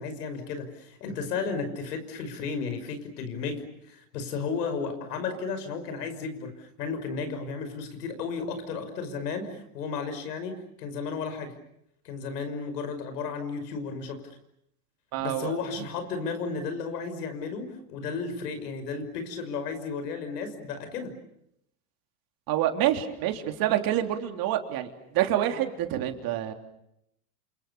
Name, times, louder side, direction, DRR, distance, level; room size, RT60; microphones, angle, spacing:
voice 1, 0.0-11.5 12.0-14.2 15.2-21.1, left 5 dB, 85° left, 8 dB, 5.9 m, -34 dB
voice 2, 15.1-15.9 22.5-26.5, right 12 dB, 50° right, 5 dB, 3.5 m, -27 dB
29.0 x 28.0 x 7.0 m, 0.77 s
supercardioid pair, 125°, 46 cm